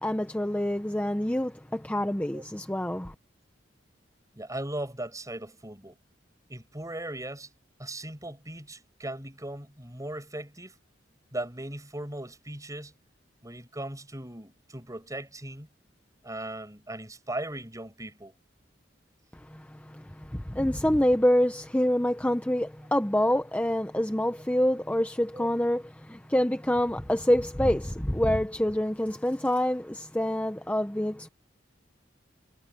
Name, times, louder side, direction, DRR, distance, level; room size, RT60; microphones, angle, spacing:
voice 1, 0.0-3.1 19.5-31.3, left 1 dB, 10° left, 0.8 m, -26 dB
voice 2, 4.3-6.0 6.5-7.5 7.8-10.7 11.3-12.9 13.4-15.7 16.2-18.4 25.3-25.5, right 1 dB, 20° right, 7.7 m, -38 dB
head